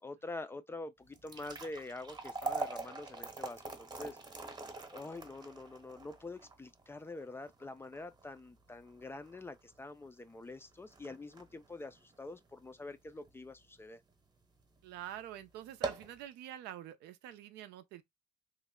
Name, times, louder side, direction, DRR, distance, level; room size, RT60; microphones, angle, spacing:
voice 1, 0.0-4.2 4.9-14.0, left 2 dB, 15° left, 0.3 m, -46 dB
sound 1, 1.1-13.4 13.8-13.9 14.6-14.8 15.1-15.2 15.6-16.2, right 3 dB, 25° right, 0.9 m, -43 dB
voice 2, 14.8-18.0, right 12 dB, 85° right, 0.5 m, -46 dB
3.1 x 2.1 x 3.5 m
cardioid pair, 110°, 17 cm